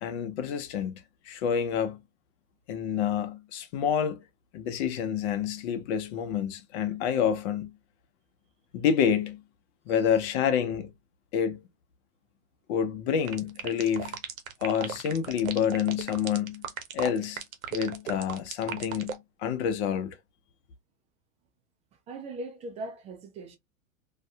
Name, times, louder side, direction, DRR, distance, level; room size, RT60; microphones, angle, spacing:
voice 1, 0.0-2.0 2.7-4.2 4.5-7.7 8.7-9.4 9.9-10.9 11.3-11.6 12.7-14.2 14.6-16.6 16.9-17.4 17.7-20.2, left 8 dB, 55° left, 0.8 m, -28 dB
sound 1, 13.3-19.2, right 8 dB, 80° right, 0.8 m, -36 dB
voice 2, 22.1-23.6, right 2 dB, 20° right, 0.3 m, -39 dB
2.6 x 2.4 x 2.2 m
hypercardioid pair, 115°, 40 cm